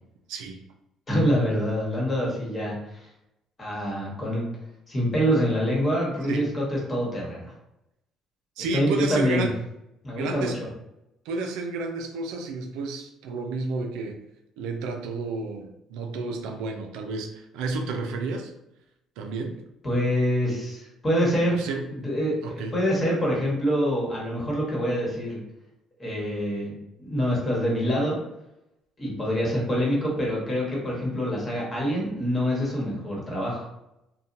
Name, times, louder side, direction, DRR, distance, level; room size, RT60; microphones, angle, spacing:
voice 1, 0.3-0.6 6.3-6.4 8.6-9.5 10.2-10.6 11.3-14.2 14.6-18.5 19.2-19.6 21.5-21.9 22.4-22.7, right 3 dB, 85° right, 3 dB, 0.4 m, -31 dB
voice 2, 1.1-3.1 3.6-4.4 4.9-7.5 8.7-9.5 10.0-10.7 19.8-21.6 21.9-22.4 22.7-25.4 26.0-26.7 27.0-28.2 29.0-33.7, equal, 25° left, -4 dB, 1.2 m, -25 dB
2.8 x 2.2 x 2.5 m, 0.85 s
cardioid pair, 95°, 0 cm